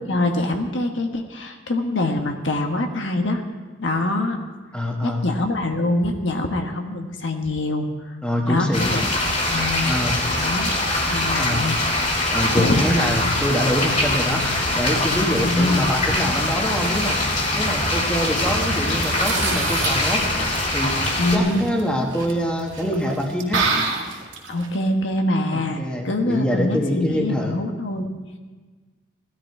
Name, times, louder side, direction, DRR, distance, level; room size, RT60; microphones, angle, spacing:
voice 1, 0.0-3.4 3.8-4.4 5.0-8.2 8.5-9.0 9.5-9.9 10.4-10.7 11.1-11.8 12.6-12.8 15.4-16.2 21.2-21.6 24.5-28.1, left 2 dB, 75° left, 4 dB, 1.4 m, -24 dB
voice 2, 4.7-5.3 8.2-9.0 9.9-10.2 11.4-11.7 12.3-17.2 17.5-20.2 20.7-21.0 21.3-23.7 25.5-27.6, equal, 5° left, 0 dB, 1.6 m, -25 dB
sound 1, 8.7-21.4, left 1 dB, 40° left, 2.9 m, -23 dB
sound 2, 16.2-24.8, right 4 dB, 80° right, 2.2 m, -31 dB
17.0 x 12.5 x 4.8 m, 1.4 s
head